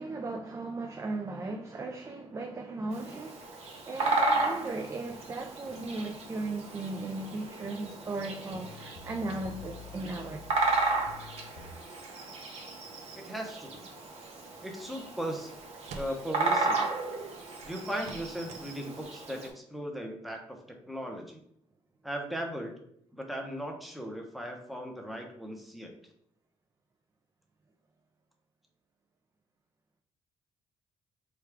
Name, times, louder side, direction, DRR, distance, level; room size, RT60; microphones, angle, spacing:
voice 1, 0.0-3.4 3.9-10.4 17.6-17.7, right 2 dB, 25° right, 0.4 m, -37 dB
Bird vocalization bird call bird song, 2.9-19.5, right 3 dB, 70° right, 0.9 m, -34 dB
sound 1, 8.5-11.7, left 5 dB, 85° left, 0.4 m, -49 dB
voice 2, 13.2-13.9 14.6-15.5 16.0-16.8 17.6-21.4 22.0-22.7 23.1-25.9, equal, ahead, 0.7 m, -37 dB
sound 2, 14.7-14.9 15.3-16.3 17.6-18.7 19.0-19.1, right 4 dB, 85° right, 0.5 m, -48 dB
4.6 x 2.4 x 3.4 m
cardioid pair, 120°, 11 cm